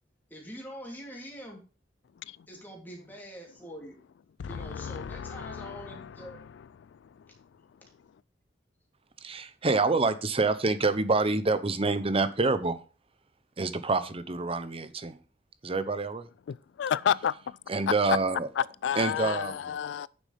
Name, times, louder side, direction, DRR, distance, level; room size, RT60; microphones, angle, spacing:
voice 1, 0.3-1.6 2.5-4.0 4.5-6.4, equal, 10° left, 3.1 m, -44 dB
voice 2, 4.4-6.1 16.8-17.6 18.8-20.1, left 8 dB, 80° left, 0.3 m, -31 dB
voice 3, 9.2-12.8 13.6-15.2 15.6-16.3 17.7-18.5 19.0-19.7, right 3 dB, 35° right, 0.8 m, -27 dB
9.4 x 7.0 x 3.4 m
head